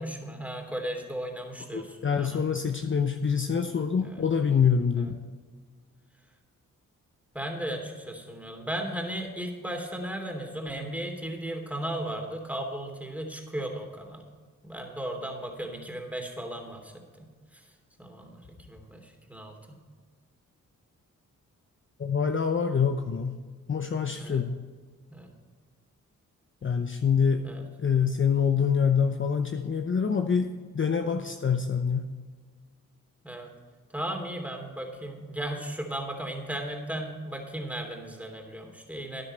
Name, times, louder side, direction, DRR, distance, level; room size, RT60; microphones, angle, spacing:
voice 1, 0.0-2.4 4.0-4.2 5.0-5.1 7.3-14.3 14.6-17.7 18.0-19.8 24.1-24.4 25.1-25.3 27.4-27.6 31.2-31.3 33.2-33.5 33.9-39.2, right 1 dB, 5° right, 2 dB, 3.0 m, -36 dB
voice 2, 1.7-5.1 22.0-23.4 23.7-24.6 26.6-27.5 27.8-30.5 30.7-32.1, left 6 dB, 35° left, 6 dB, 0.8 m, -25 dB
13.0 x 9.6 x 4.4 m, 1.5 s
cardioid pair, 65°, 33 cm